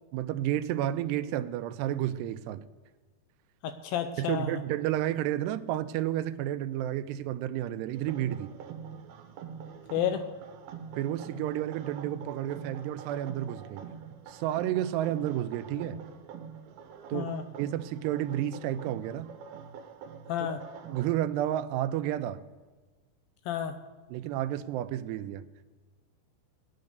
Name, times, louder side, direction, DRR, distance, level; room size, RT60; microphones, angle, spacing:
voice 1, 0.1-2.6 4.2-8.5 11.0-13.8 14.3-16.0 17.1-17.3 17.6-19.3 20.9-22.4 24.1-25.4, right 12 dB, 90° right, 12 dB, 2.8 m, -31 dB
voice 2, 3.6-4.6 9.9-10.2 17.1-17.4 20.3-20.6 23.5-23.8, left 10 dB, 75° left, 9 dB, 2.3 m, -31 dB
sound 1, 7.9-21.1, right 7 dB, 75° right, 2.9 m, -45 dB
17.0 x 10.5 x 6.7 m, 1.3 s
omnidirectional pair, 4.7 m